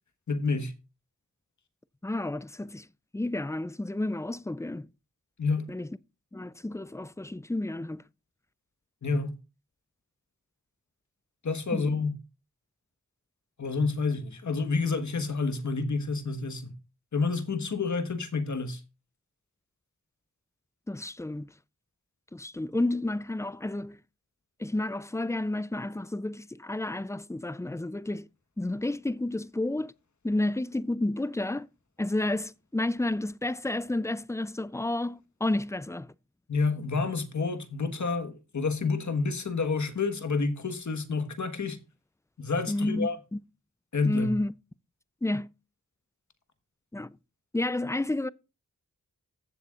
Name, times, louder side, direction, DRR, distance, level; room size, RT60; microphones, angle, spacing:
voice 1, 0.3-0.7 5.4-5.6 9.0-9.3 11.4-12.1 13.6-16.7 17.1-18.8 36.5-41.8 42.4-43.2 43.9-44.3, left 4 dB, 60° left, 1.4 m, -29 dB
voice 2, 2.0-2.9 3.1-4.9 5.7-5.9 6.3-8.0 11.7-12.0 20.9-21.5 22.3-24.0 24.6-28.3 28.6-29.9 30.2-31.7 32.0-36.1 42.7-43.4 44.0-44.5 45.2-45.5 46.9-47.2 47.5-48.3, left 2 dB, 10° left, 0.4 m, -31 dB
15.0 x 6.9 x 2.4 m
cardioid pair, 50°, 32 cm